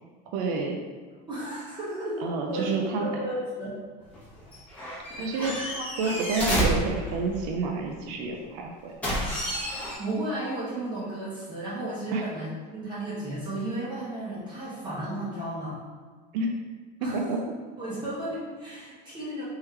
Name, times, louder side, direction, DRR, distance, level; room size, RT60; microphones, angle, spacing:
voice 1, 0.3-0.8 2.2-3.0 5.2-5.5 5.8-8.9 12.1-12.2 16.3-16.5 17.0-17.4, right 3 dB, 70° right, 1 dB, 0.5 m, -29 dB
voice 2, 1.2-2.2 2.5-3.8 5.1-5.5 6.0-6.1 9.5-15.8 17.0-17.2 17.8-19.4, right 1 dB, 20° right, -9 dB, 1.0 m, -34 dB
sound 1, 4.0-7.6 9.0-9.9, equal, 5° left, 1.1 m, -30 dB
3.6 x 3.0 x 3.3 m, 1.5 s
cardioid pair, 150°, 21 cm